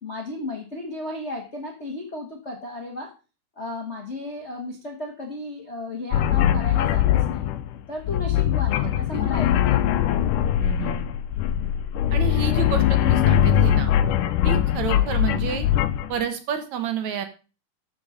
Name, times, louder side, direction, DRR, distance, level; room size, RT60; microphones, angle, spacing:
voice 1, 0.0-3.1 3.6-7.5 7.9-9.8, left 2 dB, 35° left, 1 dB, 1.1 m, -34 dB
sound 1, 6.1-16.2, left 11 dB, 85° left, 2.2 m, -21 dB
voice 2, 10.6-11.1 12.1-13.9 14.4-15.7 16.1-17.2, right 8 dB, 65° right, 8 dB, 2.4 m, -29 dB
13.0 x 5.7 x 5.1 m, 0.33 s
omnidirectional pair, 3.7 m